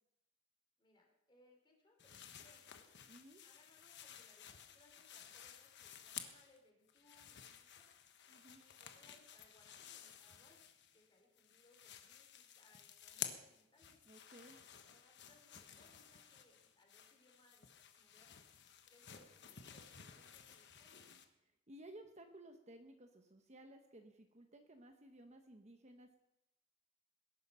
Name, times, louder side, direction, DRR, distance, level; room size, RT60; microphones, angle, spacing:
voice 1, 0.8-2.9 3.4-7.9 8.6-10.6 10.9-14.0 14.8-18.4 18.8-21.1, left 1 dB, 20° left, 0 dB, 3.8 m, -70 dB
sound 1, 2.0-6.6 6.9-11.1 11.4-21.3, left 9 dB, 50° left, 1.3 m, -53 dB
voice 2, 3.1-3.4 8.3-8.6 14.1-14.6 21.7-26.2, right 1 dB, 30° right, 5 dB, 1.1 m, -57 dB
20.0 x 11.0 x 5.7 m, 0.86 s
head